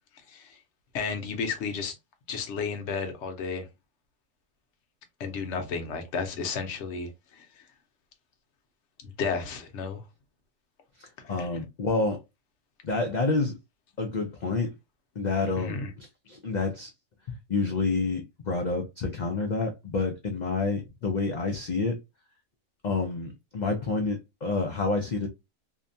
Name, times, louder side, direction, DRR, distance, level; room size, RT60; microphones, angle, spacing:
voice 1, 0.3-0.6 0.9-1.9 2.3-3.7 5.2-7.5 9.0-10.0 11.3-11.5 15.6-15.9, left 5 dB, 65° left, 0.9 m, -32 dB
voice 2, 11.0-12.2 12.8-13.5 14.0-14.8 15.2-16.9 17.3-22.0 22.8-25.3, left 3 dB, 85° left, 0.4 m, -28 dB
2.7 x 2.2 x 2.5 m
omnidirectional pair, 1.4 m